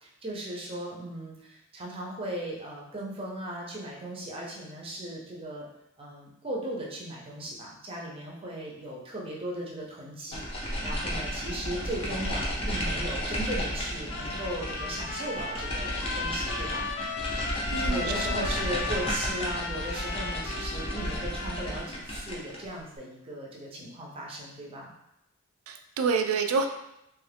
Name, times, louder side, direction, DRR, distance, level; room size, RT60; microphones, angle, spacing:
voice 1, 0.0-5.7 6.0-16.9 17.9-24.9, right 1 dB, 25° right, -3 dB, 0.6 m, -37 dB
sound 1, 10.3-22.7, equal, 25° left, 0.6 m, -33 dB
Trumpet, 14.1-21.7, left 4 dB, 70° left, 0.4 m, -36 dB
voice 2, 17.7-18.5 25.7-26.7, right 5 dB, 90° right, 6 dB, 0.4 m, -28 dB
3.0 x 2.4 x 3.3 m, 0.83 s
head